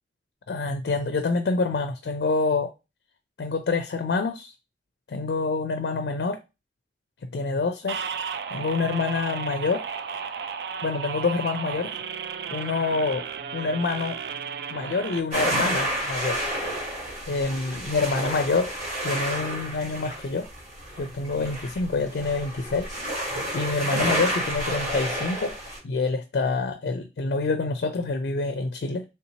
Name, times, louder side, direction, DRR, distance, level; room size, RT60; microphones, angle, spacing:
voice 1, 0.5-2.7 3.4-4.5 5.1-6.4 7.3-8.0 8.5-9.8 10.8-11.9 12.5-13.3 13.5-14.2 14.7-16.5 17.3-18.7 19.0-20.5 21.0-23.0 23.5-25.5 25.8-29.0, left 3 dB, 65° left, 0.4 m, -26 dB
sound 1, 7.9-15.2, right 6 dB, 65° right, 0.3 m, -34 dB
sound 2, 15.3-25.8, right 1 dB, 40° right, 1.6 m, -30 dB
3.3 x 2.7 x 2.9 m
head